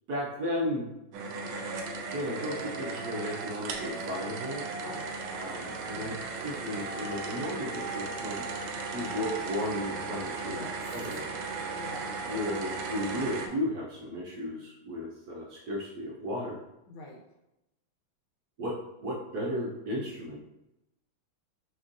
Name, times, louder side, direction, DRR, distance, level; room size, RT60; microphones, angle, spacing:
voice 1, 0.1-0.9 1.9-4.6 5.3-6.1 6.4-8.4 8.9-10.6 10.9-11.3 12.3-16.6 18.6-18.7 19.0-20.4, left 1 dB, 60° right, -4 dB, 1.1 m, -34 dB
sound 1, 1.1-13.5, right 4 dB, 80° right, 1.3 m, -36 dB
voice 2, 4.8-5.2 5.9-6.2 9.0-9.3 10.4-10.8 11.7-12.1 16.9-17.2, left 2 dB, 85° left, -1 dB, 1.8 m, -44 dB
6.1 x 3.1 x 2.6 m, 0.91 s
omnidirectional pair, 2.3 m